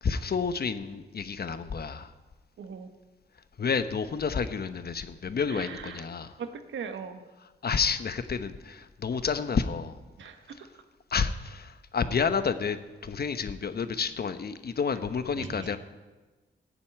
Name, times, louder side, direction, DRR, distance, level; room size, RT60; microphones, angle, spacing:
voice 1, 0.0-2.1 3.6-6.3 7.6-10.0 11.1-12.8 13.0-15.8, left 5 dB, 55° left, 11 dB, 1.0 m, -30 dB
voice 2, 2.6-2.9 5.5-6.0 6.4-7.2 10.2-10.7 15.3-15.8, right 6 dB, 85° right, 7 dB, 1.3 m, -40 dB
15.0 x 7.0 x 9.1 m, 1.2 s
cardioid pair, 65°, 19 cm